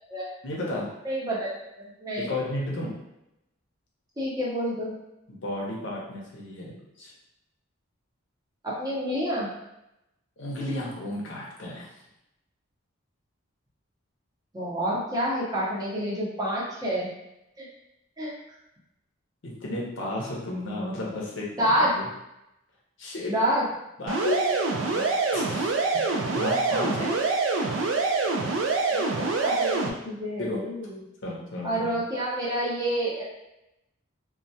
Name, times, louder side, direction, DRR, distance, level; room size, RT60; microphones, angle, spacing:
voice 1, 0.4-0.9 2.2-3.0 5.3-7.1 10.4-11.9 19.4-21.5 21.9-22.0 23.0-23.3 24.0-24.4 24.8-27.1 30.4-30.6 31.2-32.0, left 2 dB, 60° left, -4 dB, 0.6 m, -33 dB
voice 2, 1.0-1.5 1.8-2.3 4.2-4.9 8.6-9.5 14.5-17.1 17.6-17.7 18.2-18.3 21.6-21.9 23.3-23.6 28.9-31.0 31.6-33.2, equal, 20° right, -5 dB, 0.6 m, -28 dB
sound 1, 24.1-29.9, right 3 dB, 65° right, 0.3 m, -25 dB
2.2 x 2.1 x 2.6 m, 0.88 s
head